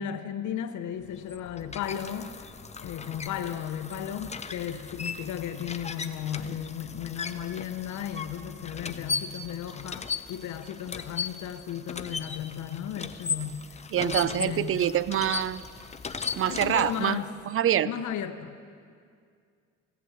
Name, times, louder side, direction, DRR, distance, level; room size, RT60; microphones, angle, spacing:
voice 1, 0.0-2.4 2.8-14.8 16.5-17.3 17.8-18.7, left 9 dB, 75° left, 8 dB, 0.9 m, -35 dB
sound 1, 1.0-17.3, left 5 dB, 20° left, 0.6 m, -37 dB
voice 2, 13.9-15.6 16.4-17.9, right 11 dB, 45° right, 17 dB, 0.5 m, -26 dB
16.0 x 8.4 x 7.5 m, 2.2 s
cardioid pair, 90°, 30 cm